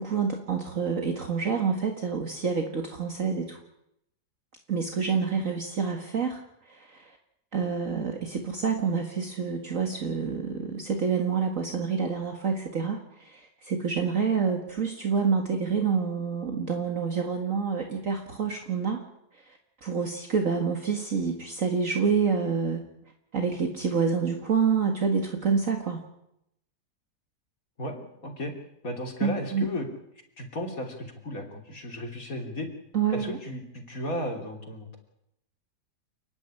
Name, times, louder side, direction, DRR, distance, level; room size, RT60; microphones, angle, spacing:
voice 1, 0.0-3.6 4.7-7.2 7.5-19.1 19.3-22.9 23.3-26.0 29.2-29.7 32.9-33.4, right 5 dB, 50° right, 3 dB, 2.1 m, -28 dB
voice 2, 27.8-28.5 28.8-29.9 30.4-32.7 33.1-35.0, left 1 dB, 55° left, 3 dB, 3.7 m, -34 dB
29.5 x 10.5 x 10.0 m, 0.80 s
omnidirectional pair, 1.8 m